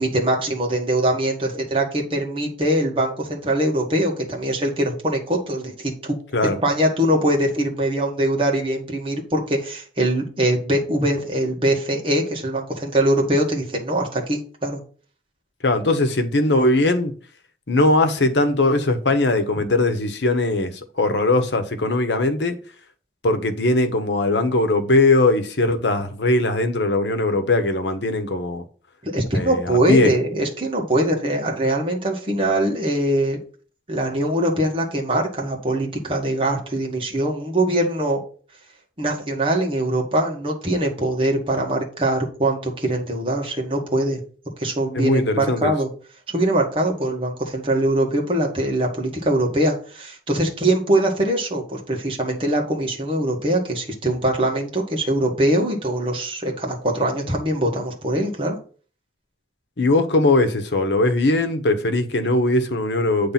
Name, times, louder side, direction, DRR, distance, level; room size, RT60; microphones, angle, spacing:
voice 1, 0.0-6.2 6.4-14.8 29.0-33.4 33.9-38.2 39.0-44.2 44.6-45.9 46.3-58.6, right 1 dB, 30° right, 1.7 m, -22 dB
voice 2, 15.6-17.1 17.7-22.6 23.2-28.6 29.3-30.1 44.9-45.7 59.8-63.3, left 2 dB, 80° left, 1.0 m, -20 dB
8.7 x 3.3 x 5.8 m
head